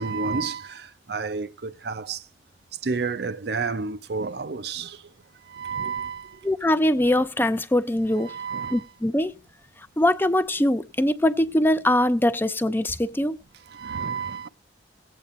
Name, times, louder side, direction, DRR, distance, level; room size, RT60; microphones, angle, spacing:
voice 1, 0.0-2.2 2.8-5.0 5.5-6.4 8.2-8.9 13.7-14.5, right 4 dB, 60° right, 0.6 m, -30 dB
voice 2, 6.4-8.3 8.7-9.3 10.0-13.4, left 1 dB, 10° left, 0.4 m, -22 dB
17.5 x 8.7 x 2.6 m
head